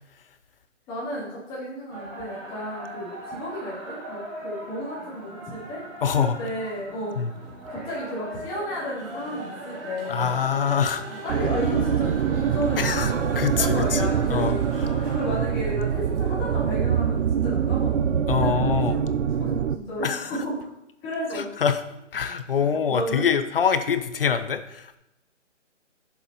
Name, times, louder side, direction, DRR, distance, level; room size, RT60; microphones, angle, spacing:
voice 1, 0.9-5.8 6.1-7.3 7.7-10.4 11.1-14.6 14.9-20.7 21.0-21.5 22.6-23.3, equal, 15° left, -7 dB, 2.6 m, -33 dB
sound 1, 1.9-15.4, right 1 dB, 30° right, 3.5 m, -40 dB
voice 2, 6.0-6.4 7.2-7.3 10.1-11.2 12.8-14.5 18.3-19.0 20.0-20.3 21.3-21.8 22.1-25.0, left 7 dB, 50° left, 11 dB, 0.7 m, -25 dB
sound 2, 9.0-18.4, right 4 dB, 50° right, 1.4 m, -48 dB
sound 3, 11.3-19.8, right 8 dB, 70° right, 0.6 m, -24 dB
11.0 x 7.0 x 2.8 m, 0.86 s
hypercardioid pair, 160°, 37 cm